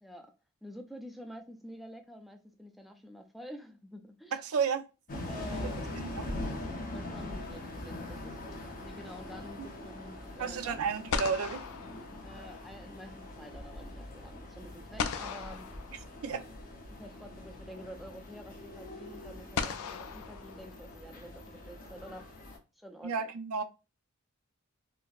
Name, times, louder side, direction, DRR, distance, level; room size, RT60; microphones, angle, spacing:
voice 1, 0.0-0.3 0.6-4.4 5.3-5.9 6.9-10.8 12.2-15.7 17.0-22.5 22.8-23.3, equal, ahead, 0.4 m, -48 dB
voice 2, 4.3-4.8 6.0-6.3 10.4-11.6 16.2-16.4 23.0-23.6, right 6 dB, 85° right, 0.5 m, -32 dB
sound 1, 5.1-22.6, left 1 dB, 40° left, 0.7 m, -43 dB
sound 2, 5.6-6.5 10.6-10.7 11.1-12.8 15.0-16.6 17.9-18.0 19.5-21.2, left 6 dB, 80° left, 0.4 m, -38 dB
4.2 x 2.0 x 2.3 m
head